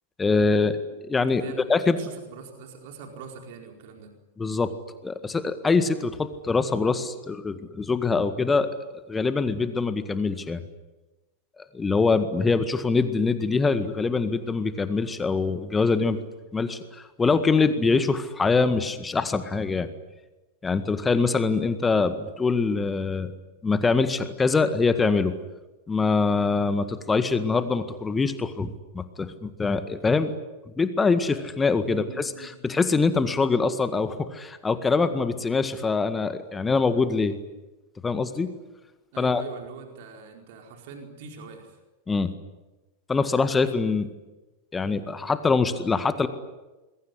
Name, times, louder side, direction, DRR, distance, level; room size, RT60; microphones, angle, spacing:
voice 1, 0.2-0.8 1.1-1.4 1.7-2.0 4.4-4.7 5.0-8.7 9.1-10.6 11.6-16.2 16.5-19.9 20.6-23.3 23.6-25.3 25.9-30.3 30.8-32.3 32.6-37.3 38.0-38.5 39.2-39.4 42.1-42.3 43.1-44.1 44.7-46.3, left 4 dB, 15° left, 11 dB, 1.8 m, -24 dB
voice 2, 1.2-1.7 2.0-4.1 12.2-12.5 31.8-32.5 39.1-41.8, right 5 dB, 50° right, 3 dB, 4.5 m, -43 dB
26.5 x 22.0 x 9.8 m, 1.1 s
figure-of-eight pair, 90°, 0 cm